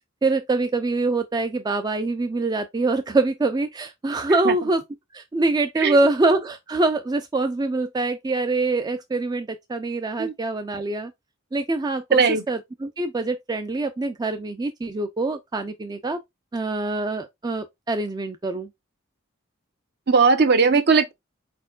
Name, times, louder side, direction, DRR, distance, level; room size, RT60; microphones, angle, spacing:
voice 1, 0.2-4.8 5.1-11.1 11.5-16.2 16.5-18.7, right 2 dB, 20° right, 0.3 m, -24 dB
voice 2, 20.1-21.1, right 4 dB, 50° right, 0.6 m, -18 dB
4.4 x 4.3 x 2.4 m
head